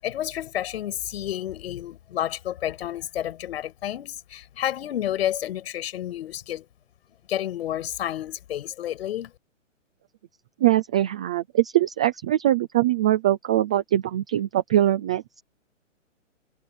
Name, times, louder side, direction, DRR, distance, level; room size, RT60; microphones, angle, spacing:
voice 1, 0.0-6.6 7.3-9.3, left 12 dB, 50° left, 7.0 m, -30 dB
voice 2, 10.6-15.4, right 13 dB, 5° right, 0.3 m, -22 dB
hypercardioid pair, 130°, 39 cm